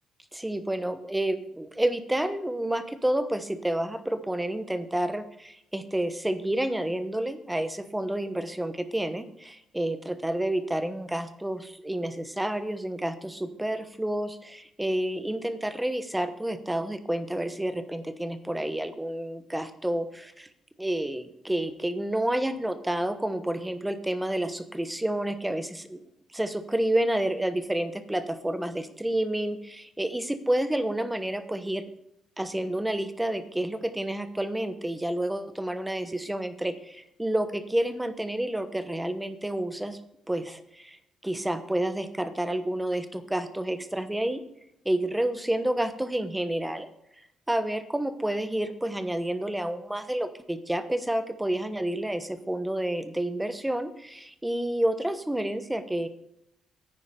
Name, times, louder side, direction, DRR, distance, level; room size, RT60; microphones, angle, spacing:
voice 1, 0.3-20.5 20.8-26.0 26.3-31.9 32.4-40.0 40.3-44.4 44.8-46.9 47.5-56.1, right 1 dB, 10° right, 11 dB, 1.0 m, -29 dB
9.8 x 9.7 x 5.1 m, 0.78 s
cardioid pair, 90°, 0 cm